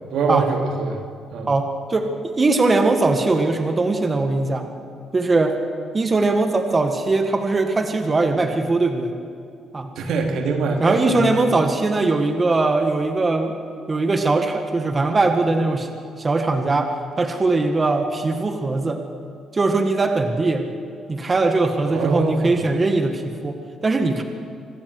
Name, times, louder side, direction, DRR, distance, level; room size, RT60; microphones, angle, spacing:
voice 1, 0.1-1.0 1.3-1.5 10.0-11.2 21.8-22.6, right 3 dB, 75° right, 4 dB, 2.6 m, -23 dB
voice 2, 1.5-2.1 2.3-4.7 5.1-5.6 5.9-9.1 9.7-9.9 10.8-13.5 13.9-15.9 16.2-19.0 19.5-20.6 21.1-24.2, right 3 dB, 30° right, 5 dB, 1.9 m, -20 dB
25.5 x 13.0 x 8.1 m, 2.4 s
cardioid pair, 90°, 0 cm